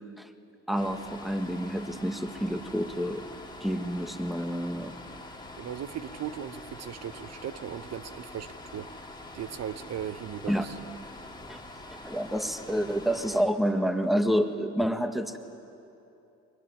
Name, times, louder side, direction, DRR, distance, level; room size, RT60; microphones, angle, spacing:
sound 1, 0.7-13.4, left 2 dB, 15° left, 2.2 m, -45 dB
voice 1, 0.7-3.2 3.6-4.9 10.5-10.6 11.5-11.6 12.0-15.4, equal, ahead, 7 dB, 1.7 m, -28 dB
voice 2, 5.6-9.0 9.3-10.8, right 9 dB, 60° right, 11 dB, 0.9 m, -38 dB
22.5 x 21.5 x 10.0 m, 2.8 s
cardioid pair, 90°, 30 cm